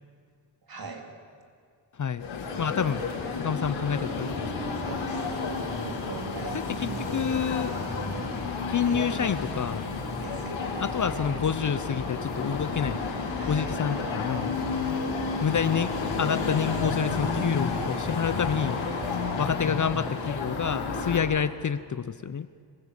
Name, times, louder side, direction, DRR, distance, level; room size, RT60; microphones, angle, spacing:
voice 1, 0.7-1.1 4.8-8.6 8.8-9.2 10.2-11.3 13.3-13.8, right 3 dB, 45° right, 3 dB, 3.8 m, -41 dB
sound 1, 2.2-21.2, left 4 dB, 70° left, 5.6 m, -31 dB
voice 2, 2.6-3.0 3.4-4.7 6.5-7.7 8.7-9.8 10.8-13.0 13.5-14.5 15.4-15.9 16.2-18.8 19.4-22.5, left 7 dB, 40° left, 14 dB, 0.8 m, -28 dB
26.5 x 15.5 x 8.4 m, 2.2 s
supercardioid pair, 55°, 48 cm